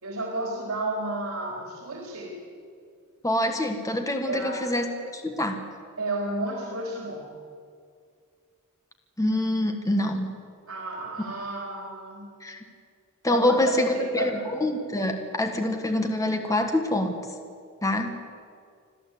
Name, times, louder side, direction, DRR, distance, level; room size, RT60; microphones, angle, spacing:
voice 1, 0.0-2.3 4.2-4.6 6.0-7.2 10.7-12.2 13.3-13.6 13.9-14.3, right 2 dB, 75° right, 0 dB, 3.9 m, -32 dB
voice 2, 3.2-4.9 5.1-5.6 9.2-10.3 12.4-12.6 13.2-17.2 17.8-18.2, left 1 dB, 15° left, 5 dB, 1.6 m, -25 dB
26.0 x 14.5 x 8.5 m, 2.2 s
head